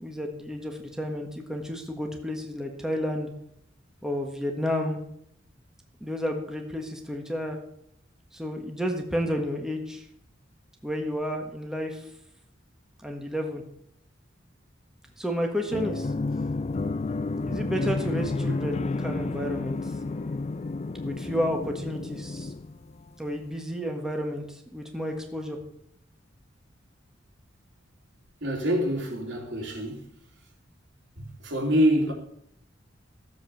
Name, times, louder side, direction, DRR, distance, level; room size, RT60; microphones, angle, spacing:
voice 1, 0.0-3.3 4.0-5.0 6.0-7.6 8.3-10.0 10.8-12.1 13.0-13.6 15.2-16.1 17.4-19.9 21.0-22.5 23.2-25.6, equal, 5° right, 1.5 m, -31 dB
sound 1, 15.7-23.3, left 3 dB, 35° left, 0.4 m, -31 dB
voice 2, 28.4-30.1 31.2-32.1, equal, 70° right, 3.4 m, -26 dB
14.5 x 7.5 x 7.2 m
head